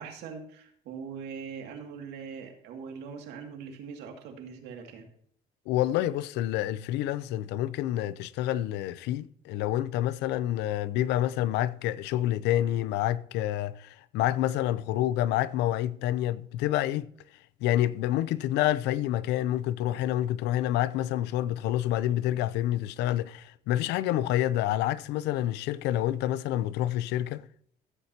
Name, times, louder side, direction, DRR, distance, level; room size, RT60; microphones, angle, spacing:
voice 1, 0.0-5.1, right 6 dB, 85° right, 2.3 m, -41 dB
voice 2, 5.7-17.1 17.6-27.4, left 13 dB, 85° left, 0.5 m, -28 dB
14.5 x 7.9 x 2.8 m
cardioid pair, 110°, 17 cm